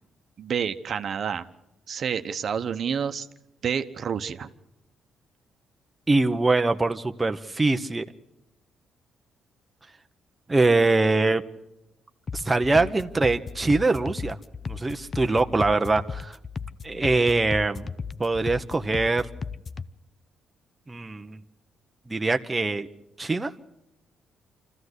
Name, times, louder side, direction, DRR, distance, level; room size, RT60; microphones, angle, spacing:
voice 1, 0.4-1.4 1.9-3.3 3.6-4.5, right 7 dB, 55° right, 9 dB, 1.0 m, -29 dB
voice 2, 6.1-8.0 10.5-11.4 12.3-14.4 14.7-16.4 16.8-17.9 18.2-19.2 20.9-21.4 22.1-22.9 23.2-23.5, right 3 dB, 20° right, 6 dB, 0.8 m, -23 dB
sound 1, 12.3-19.9, left 5 dB, 40° left, 0.7 m, -36 dB
25.5 x 14.5 x 8.1 m, 0.92 s
cardioid pair, 90°, 0 cm